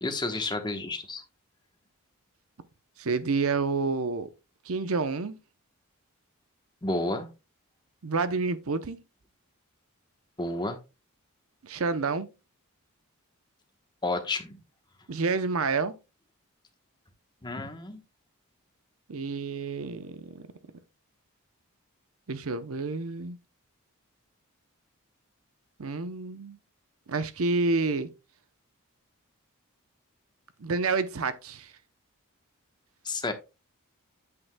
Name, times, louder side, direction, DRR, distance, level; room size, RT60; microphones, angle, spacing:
voice 1, 0.0-1.2 6.8-7.3 10.4-10.8 14.0-14.6 17.4-18.0 33.0-33.3, left 2 dB, 20° left, 1.1 m, -31 dB
voice 2, 3.0-4.3 4.7-5.4 8.0-9.0 11.6-12.3 15.1-16.0 19.1-20.5 22.3-23.4 25.8-26.6 27.1-28.1 30.6-31.7, right 4 dB, 65° right, 0.7 m, -29 dB
9.3 x 7.9 x 2.2 m
head